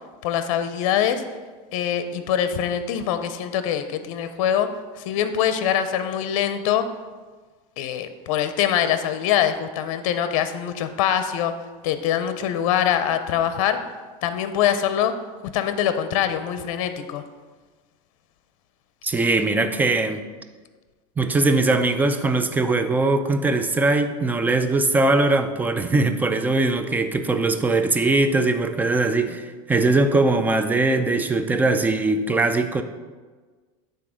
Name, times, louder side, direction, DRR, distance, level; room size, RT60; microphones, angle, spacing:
voice 1, 0.2-1.2 1.7-4.7 5.0-6.8 7.8-11.5 11.8-13.8 14.2-15.1 15.5-17.2, left 10 dB, 75° left, 10 dB, 0.6 m, -23 dB
voice 2, 19.0-20.2 21.2-32.8, right 2 dB, 10° right, 8 dB, 0.4 m, -21 dB
8.3 x 3.8 x 5.1 m, 1.4 s
supercardioid pair, 140°, 17 cm